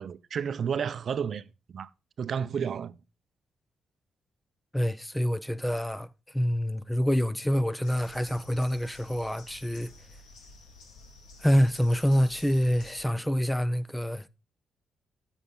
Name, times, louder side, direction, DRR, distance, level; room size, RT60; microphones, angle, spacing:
voice 1, 0.0-1.4 1.7-1.9 2.2-2.9, right 7 dB, 55° right, 0.5 m, -31 dB
voice 2, 4.7-6.1 6.3-9.9 11.4-14.3, equal, 5° left, 0.5 m, -26 dB
sound 1, 7.8-13.0, left 3 dB, 85° left, 2.0 m, -52 dB
9.5 x 7.1 x 3.8 m
cardioid pair, 95°, 0 cm